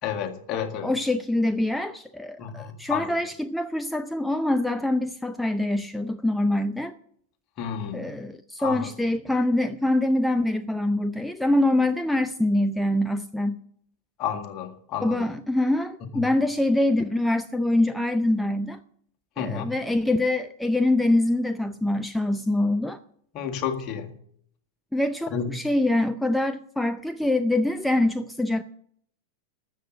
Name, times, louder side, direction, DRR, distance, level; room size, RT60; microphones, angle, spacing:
voice 1, 0.0-0.9 2.4-3.2 7.6-8.1 8.6-8.9 14.2-15.3 16.1-16.3 19.4-19.7 23.3-24.1 25.3-25.6, left 8 dB, 40° left, 1.9 m, -31 dB
voice 2, 0.8-6.9 7.9-13.6 15.0-18.8 19.4-23.0 24.9-28.6, left 1 dB, 5° left, 0.5 m, -24 dB
13.0 x 7.8 x 7.8 m
figure-of-eight pair, 95°, 0 cm